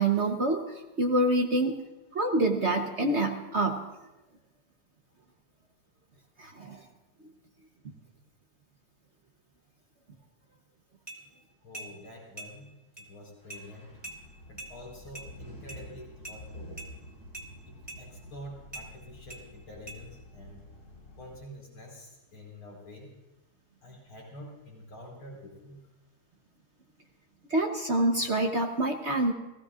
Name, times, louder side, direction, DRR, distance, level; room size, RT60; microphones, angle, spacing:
voice 1, 0.0-1.8 2.1-3.8 6.4-6.8 27.5-29.3, right 2 dB, 45° right, 3 dB, 0.9 m, -26 dB
sound 1, 11.1-11.2 11.7-11.9 12.4-12.5 13.0-13.1 13.5-13.6 14.0-14.2 14.6-14.7 15.1-15.3 15.7-15.8 16.2-16.4 16.8-16.9 17.3-17.5 17.9-18.0 18.7-18.9 19.3-19.4 19.9-20.0, right 1 dB, 10° right, 2.0 m, -42 dB
voice 2, 11.6-14.0 14.5-16.8 17.7-20.6 21.2-23.2 23.8-25.8, left 1 dB, 75° left, -2 dB, 5.3 m, -47 dB
sound 2, 13.4-21.4, left 1 dB, 50° left, 5.1 m, -49 dB
30.0 x 17.0 x 2.5 m, 1.0 s
omnidirectional pair, 2.3 m